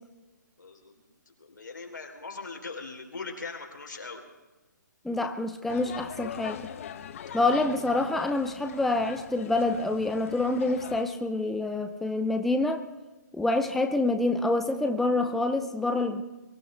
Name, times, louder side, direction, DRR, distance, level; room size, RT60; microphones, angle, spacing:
voice 1, 0.6-4.2, left 4 dB, 80° left, 3 dB, 3.6 m, -41 dB
voice 2, 5.0-6.6 7.3-12.8 13.3-16.2, left 2 dB, ahead, 6 dB, 0.6 m, -27 dB
sound 1, 5.7-11.0, left 8 dB, 45° left, 1.0 m, -41 dB
23.5 x 16.0 x 3.3 m, 1.1 s
figure-of-eight pair, 140°, 10 cm